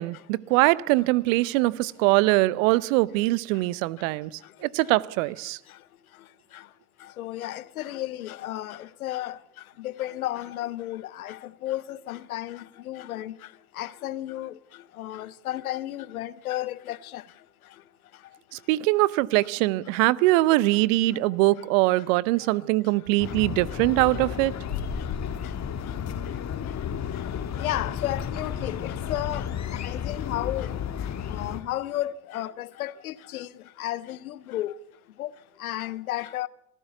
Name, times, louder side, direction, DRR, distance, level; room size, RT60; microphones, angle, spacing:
voice 1, 0.0-4.3 4.6-5.6 18.5-24.6, right 19 dB, 65° right, 0.7 m, -22 dB
voice 2, 7.2-9.4 9.8-13.3 13.8-14.5 15.0-17.2 27.6-29.5 29.7-30.7 31.3-33.5 33.8-34.7 35.2-35.3 35.6-36.5, left 14 dB, 80° left, 0.8 m, -33 dB
sound 1, 23.2-31.6, left 8 dB, 40° left, 1.7 m, -33 dB
sound 2, 24.6-29.5, left 5 dB, 60° left, 3.3 m, -40 dB
26.5 x 14.5 x 6.9 m
figure-of-eight pair, 60°, 42 cm